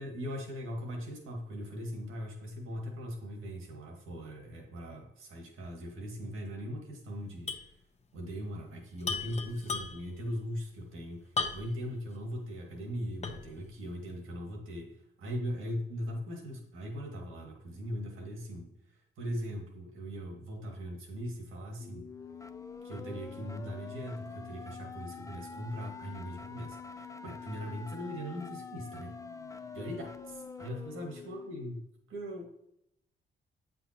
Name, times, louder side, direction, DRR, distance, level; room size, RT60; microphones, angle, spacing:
voice 1, 0.0-7.5 8.1-22.1 22.8-29.1 29.7-31.8 32.1-32.5, equal, 80° right, 2 dB, 1.7 m, -40 dB
sound 1, 7.5-7.7 8.0-8.1 9.0-10.2 11.4-11.9 12.4-12.5 13.2-13.6, left 4 dB, 30° left, 0.9 m, -35 dB
sound 2, 21.8-31.8, left 5 dB, 15° left, 0.4 m, -45 dB
7.9 x 5.5 x 2.9 m, 0.79 s
supercardioid pair, 60°, 21 cm